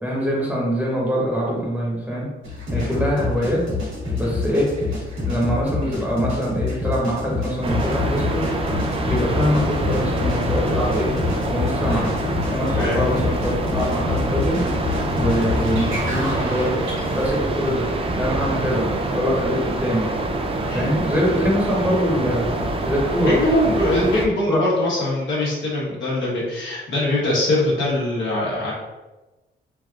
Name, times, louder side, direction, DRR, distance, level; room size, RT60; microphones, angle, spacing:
voice 1, 0.0-2.3 2.7-3.6 4.2-4.7 5.3-8.5 9.0-11.1 11.5-12.1 12.5-14.6 15.2-16.8 17.1-17.9 18.1-20.1 20.7-22.5 22.8-23.4 24.5-24.6, equal, 10° right, -5 dB, 1.0 m, -23 dB
sound 1, 2.4-17.6, left 3 dB, 80° right, 1.4 m, -28 dB
sound 2, 7.6-24.3, right 2 dB, 30° right, 0.4 m, -26 dB
sound 3, 7.8-16.4, left 3 dB, 40° left, 0.7 m, -31 dB
voice 2, 12.7-13.1 15.3-15.5 20.6-20.9 23.2-28.7, left 1 dB, 75° left, -5 dB, 1.2 m, -22 dB
3.3 x 2.5 x 2.4 m, 1.1 s
cardioid pair, 90°, 20 cm